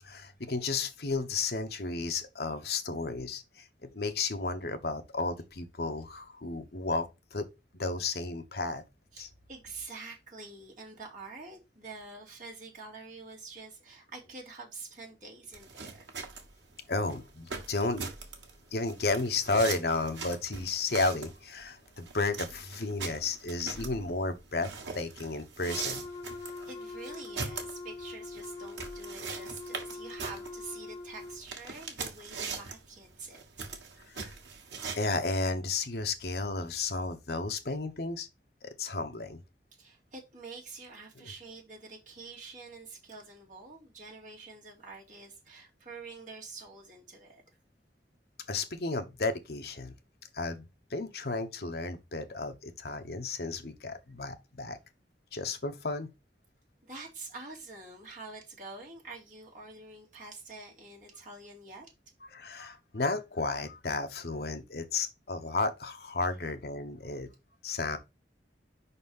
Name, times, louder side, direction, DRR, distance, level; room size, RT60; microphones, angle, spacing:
voice 1, 0.0-3.7 3.9-7.5 7.7-8.8 9.2-9.3 16.9-18.1 18.7-26.0 34.1-34.3 35.0-38.3 38.6-39.4 48.5-49.9 50.3-54.8 55.3-56.1 62.2-67.3 67.6-68.0, left 3 dB, 60° left, 1.0 m, -33 dB
voice 2, 9.1-16.0 26.7-33.4 39.8-47.4 56.8-61.9, right 3 dB, 45° right, 2.4 m, -46 dB
sound 1, 15.5-35.0, right 5 dB, 90° right, 1.5 m, -41 dB
Wind instrument woodwind instrument, 25.7-31.4, left 3 dB, 20° left, 1.3 m, -43 dB
5.3 x 4.2 x 5.4 m
head